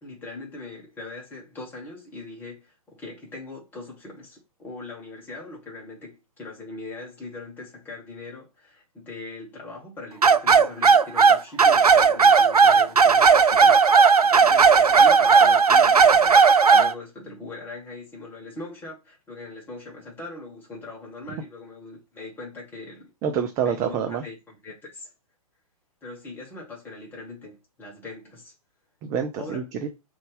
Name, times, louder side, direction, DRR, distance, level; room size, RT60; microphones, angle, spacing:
voice 1, 0.0-13.8 14.2-23.1 23.6-25.1 26.0-28.5 29.4-29.6, left 3 dB, 10° left, 1.9 m, -40 dB
sound 1, 10.2-16.9, right 5 dB, 85° right, 0.4 m, -15 dB
voice 2, 23.2-24.2 29.0-29.9, right 7 dB, 15° right, 0.3 m, -27 dB
3.9 x 3.1 x 3.5 m
figure-of-eight pair, 115°, 19 cm